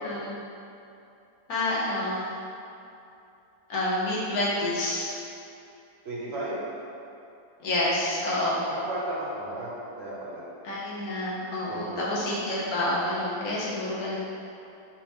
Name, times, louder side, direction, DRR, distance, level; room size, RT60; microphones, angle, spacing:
voice 1, 0.0-0.3 1.5-2.2 3.7-5.1 7.6-8.6 10.6-14.2, left 1 dB, 90° left, -6 dB, 1.4 m, -28 dB
voice 2, 6.0-6.6 8.7-10.4 11.7-12.1, right 1 dB, 55° right, -5 dB, 0.9 m, -34 dB
4.5 x 3.6 x 3.0 m, 2.7 s
omnidirectional pair, 1.5 m